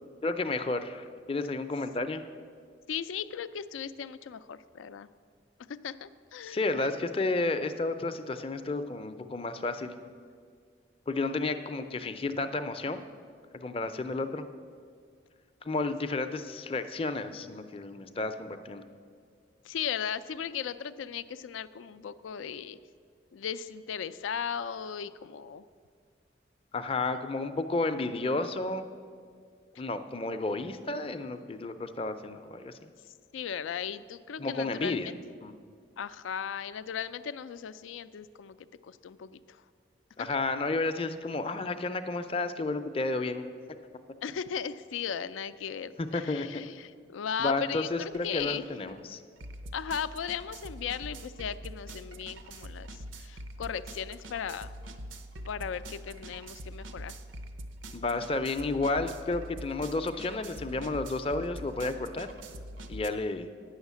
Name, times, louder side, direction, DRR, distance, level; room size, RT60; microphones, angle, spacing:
voice 1, 0.2-2.2 6.4-10.0 11.1-13.0 13.5-14.4 15.6-18.8 26.7-28.9 29.8-32.9 34.4-35.1 35.4-35.5 40.2-43.5 46.0-46.5 47.4-49.2 57.9-62.3 62.9-63.5, left 3 dB, 30° left, 9 dB, 0.4 m, -32 dB
voice 2, 2.9-5.1 5.7-6.9 19.6-22.8 23.3-25.6 33.3-35.1 36.0-38.6 38.8-39.6 44.2-48.6 49.7-52.9 53.2-54.7 55.5-57.2, left 7 dB, 90° left, 14 dB, 0.4 m, -37 dB
sound 1, 47.4-47.6 47.9-63.1, right 1 dB, 90° right, 0.7 m, -44 dB
9.5 x 6.4 x 8.2 m, 2.1 s
head